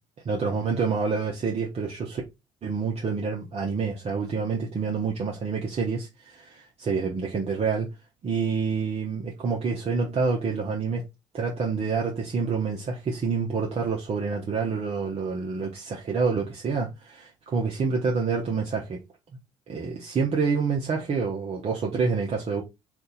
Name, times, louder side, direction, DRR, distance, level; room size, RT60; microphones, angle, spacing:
voice 1, 0.2-2.2 2.6-7.9 8.2-11.0 11.3-19.0 19.7-22.6, right 5 dB, 40° right, 0.9 m, -27 dB
2.7 x 2.5 x 3.7 m
figure-of-eight pair, 50°, 16 cm